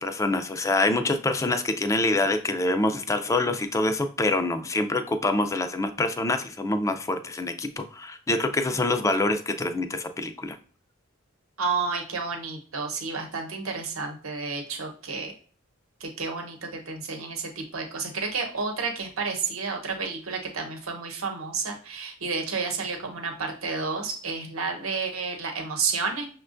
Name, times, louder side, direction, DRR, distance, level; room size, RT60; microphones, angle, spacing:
voice 1, 0.0-10.6, left 2 dB, 15° left, 8 dB, 0.3 m, -26 dB
voice 2, 11.6-15.3 16.0-26.3, right 4 dB, 85° right, 2 dB, 0.9 m, -31 dB
6.3 x 2.2 x 2.5 m, 0.43 s
head